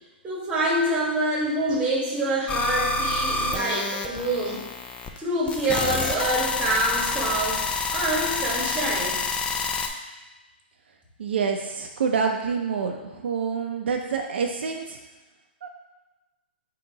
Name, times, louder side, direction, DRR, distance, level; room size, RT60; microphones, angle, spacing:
voice 1, 0.2-4.6 5.2-9.2, right 1 dB, 15° right, -3 dB, 1.2 m, -26 dB
sound 1, 2.5-5.2 5.5-9.9, left 4 dB, 15° left, 0.4 m, -28 dB
voice 2, 11.2-15.0 15.6-15.7, right 5 dB, 75° right, 3 dB, 0.5 m, -27 dB
3.9 x 2.8 x 4.6 m, 1.1 s
hypercardioid pair, 130°, 6 cm